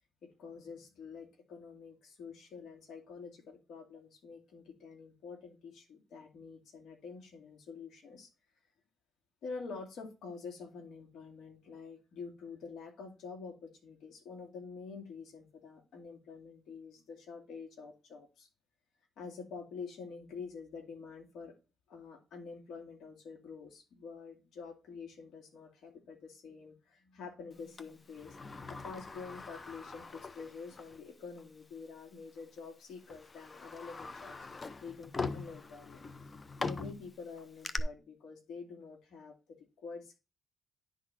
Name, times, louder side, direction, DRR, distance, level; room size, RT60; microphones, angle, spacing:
voice 1, 0.2-8.3 9.4-18.5 19.2-21.5 21.9-28.4 28.7-34.3 34.8-36.1 36.6-40.2, left 5 dB, 70° left, 3 dB, 2.4 m, -47 dB
Sliding door, 27.8-31.0 31.4-31.5 32.4-32.6 33.1-37.8, left 4 dB, 30° left, 0.6 m, -42 dB
10.5 x 3.9 x 4.5 m, 0.28 s
cardioid pair, 90°, 0 cm